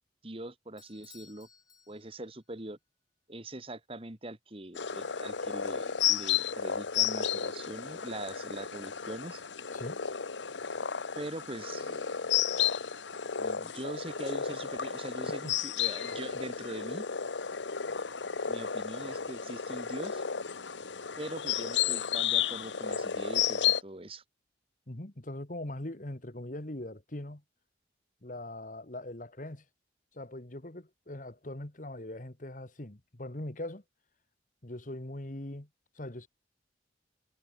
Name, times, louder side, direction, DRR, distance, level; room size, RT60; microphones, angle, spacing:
voice 1, 0.2-1.5 1.9-2.8 3.3-9.4 11.2-12.3 13.4-17.1 18.5-20.2 21.2-24.2, right 1 dB, 30° right, 1.9 m, -42 dB
Bell / Doorbell, 0.8-2.5, left 6 dB, 20° left, 6.0 m, -58 dB
sound 1, 4.8-23.8, left 8 dB, 85° left, 1.1 m, -32 dB
voice 2, 24.9-27.4 28.2-29.6 30.1-33.8 34.6-35.7 36.0-36.3, left 1 dB, 45° left, 1.8 m, -41 dB
head